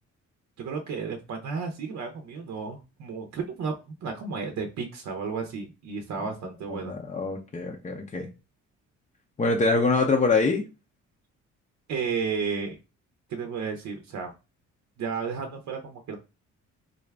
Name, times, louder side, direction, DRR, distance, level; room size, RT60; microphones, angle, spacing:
voice 1, 0.6-3.7 4.0-6.9 11.9-12.8 13.3-14.3 15.0-16.2, right 5 dB, 65° right, 5 dB, 0.7 m, -32 dB
voice 2, 6.7-8.3 9.4-10.6, left 3 dB, 25° left, 1 dB, 0.5 m, -24 dB
3.9 x 2.3 x 3.3 m, 0.29 s
cardioid pair, 90°, 30 cm